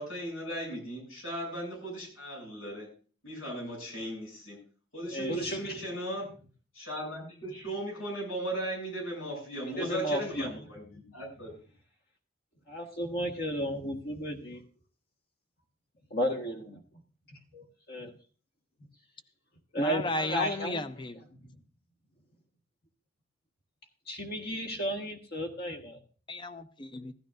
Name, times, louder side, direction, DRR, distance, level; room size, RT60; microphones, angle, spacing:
voice 1, 0.0-2.9 3.2-4.6 4.9-6.3 6.7-11.5, right 1 dB, 90° left, 7.4 m, -37 dB
voice 2, 5.1-5.8 9.8-10.5 12.7-14.6 16.1-16.7 17.5-18.1 19.7-20.8 21.4-21.5 24.1-26.0, equal, 50° left, 1.5 m, -33 dB
voice 3, 19.8-21.2 26.3-27.1, left 2 dB, 25° left, 0.6 m, -34 dB
15.5 x 12.5 x 2.5 m
head